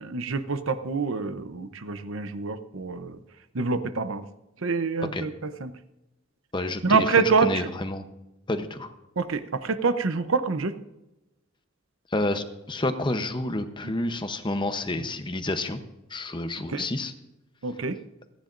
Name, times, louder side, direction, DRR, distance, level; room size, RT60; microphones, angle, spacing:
voice 1, 0.0-3.2 3.5-4.3 4.6-5.7 6.8-7.7 9.2-10.7 16.7-16.8 17.6-18.0, right 4 dB, 65° right, 11 dB, 0.8 m, -26 dB
voice 2, 6.5-8.0 8.5-8.9 12.1-15.8 16.1-17.1, left 2 dB, 25° left, 8 dB, 0.8 m, -29 dB
28.5 x 10.0 x 2.6 m, 0.96 s
head